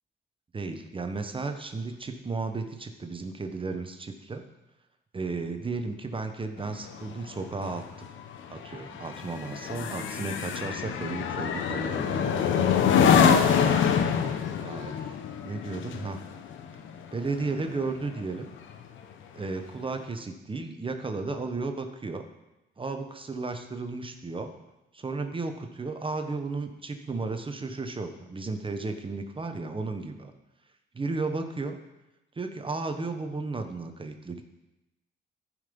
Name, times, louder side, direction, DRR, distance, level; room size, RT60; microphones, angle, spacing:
voice 1, 0.5-4.5 5.1-8.1 8.5-13.2 14.6-15.1 15.4-16.2 17.1-18.5 19.3-22.2 22.8-24.5 24.9-30.3 30.9-31.8 32.3-34.4, right 3 dB, 25° right, 6 dB, 1.1 m, -34 dB
sound 1, 6.6-18.3 18.7-19.0, left 7 dB, 75° left, 0.9 m, -26 dB
14.5 x 5.7 x 5.3 m, 0.94 s
cardioid pair, 90°, 20 cm